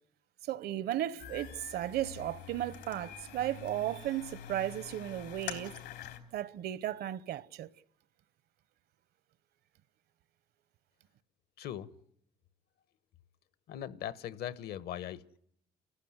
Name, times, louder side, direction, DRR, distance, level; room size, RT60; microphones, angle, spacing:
voice 1, 0.5-5.7 6.3-7.7, right 13 dB, 70° right, 1.0 m, -35 dB
sound 1, 1.2-6.2, left 9 dB, 85° left, 3.5 m, -46 dB
voice 2, 11.6-11.9 13.7-15.4, left 10 dB, 70° left, 1.1 m, -40 dB
30.0 x 15.0 x 9.7 m
cardioid pair, 110°, 17 cm